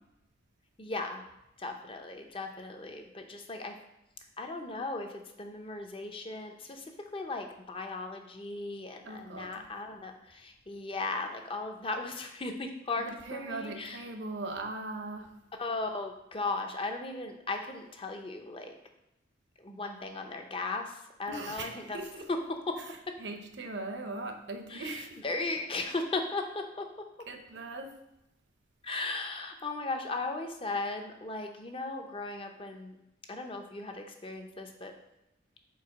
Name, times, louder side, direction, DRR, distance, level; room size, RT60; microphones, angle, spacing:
voice 1, 0.8-1.2 1.6-3.7 4.4-14.0 15.6-18.7 19.6-22.0 22.3-22.8 23.1-23.2 24.7-26.9 28.8-33.0 33.3-34.9, left 3 dB, 30° left, 5 dB, 0.6 m, -37 dB
voice 2, 9.0-9.7 13.0-15.4 21.3-22.3 23.2-25.2 27.3-28.0, right 2 dB, 65° right, 5 dB, 0.8 m, -40 dB
4.7 x 4.3 x 5.8 m, 0.89 s
head